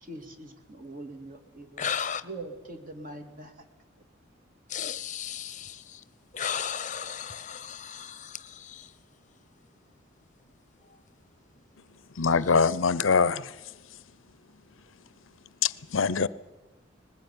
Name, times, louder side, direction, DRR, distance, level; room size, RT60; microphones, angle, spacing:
voice 1, 0.0-1.9 2.2-3.5, right 2 dB, 40° right, 2.3 m, -42 dB
voice 2, 1.8-2.2 4.7-5.7 6.3-8.2, left 8 dB, 35° left, 0.8 m, -33 dB
voice 3, 12.2-13.4 15.6-16.3, left 5 dB, 75° left, 0.7 m, -23 dB
20.5 x 15.5 x 9.6 m
head